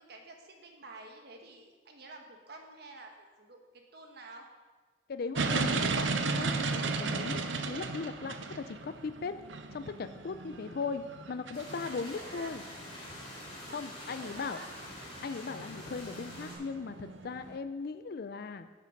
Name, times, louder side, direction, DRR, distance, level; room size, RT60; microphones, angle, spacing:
voice 1, 0.0-4.5 11.9-12.6 13.7-14.7, right 3 dB, 60° right, 3 dB, 1.2 m, -50 dB
voice 2, 5.1-7.4 7.6-9.3 9.7-11.0 11.3-12.6 13.7-14.6 15.2-18.7, left 4 dB, 55° left, 10 dB, 0.4 m, -38 dB
sound 1, 5.3-17.6, right 4 dB, 75° right, 0.7 m, -36 dB
sound 2, 11.5-16.6, left 1 dB, 30° left, 3.3 m, -46 dB
9.8 x 6.7 x 5.3 m, 1.3 s
head